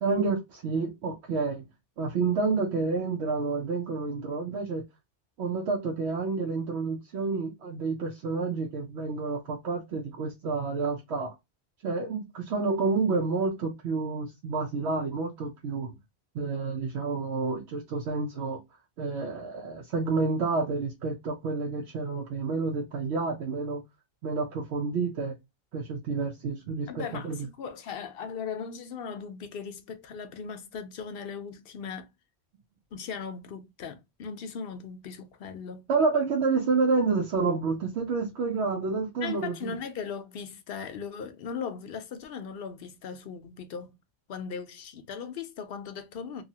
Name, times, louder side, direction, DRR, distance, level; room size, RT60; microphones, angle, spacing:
voice 1, 0.0-1.7 2.0-4.8 5.4-11.3 11.8-16.0 16.3-18.6 19.0-23.8 24.2-25.4 25.7-27.5 35.9-39.7, right 4 dB, 80° right, 0.9 m, -29 dB
voice 2, 26.9-32.1 32.9-35.9 39.2-44.0 44.3-46.4, left 6 dB, 65° left, 0.7 m, -38 dB
2.8 x 2.3 x 2.7 m
omnidirectional pair, 1.1 m